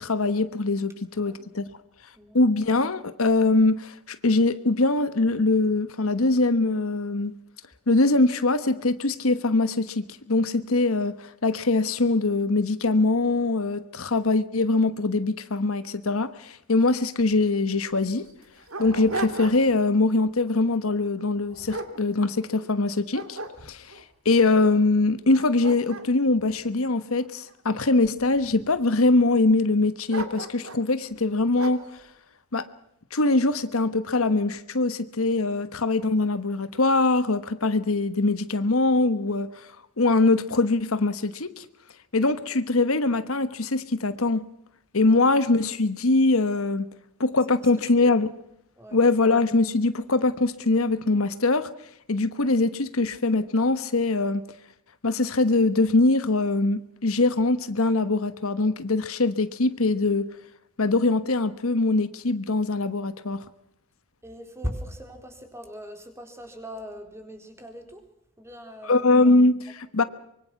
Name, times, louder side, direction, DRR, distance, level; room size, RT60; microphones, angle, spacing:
voice 1, 0.0-1.6 2.3-7.3 7.9-18.3 18.8-23.4 23.6-23.9 24.2-31.8 32.5-32.7 33.1-39.7 40.0-41.6 42.1-44.4 44.9-46.9 47.2-48.3 48.9-51.7 52.1-54.4 55.0-60.3 60.8-63.4 68.9-70.0, left 2 dB, 70° left, 12 dB, 1.2 m, -22 dB
voice 2, 1.1-1.6 2.2-2.4 47.8-48.2 48.8-49.0 64.2-68.1 68.4-69.1, equal, 10° right, 5 dB, 3.9 m, -39 dB
Dog, 17.2-17.3 17.5-17.6 18.2-19.9 20.3-20.6 21.2-22.7 23.1-24.0 24.6-24.7 25.2-27.5 28.2-28.8 30.1-30.9 31.6-32.0, right 2 dB, 70° right, 2.7 m, -37 dB
24.5 x 23.5 x 5.9 m, 0.75 s
head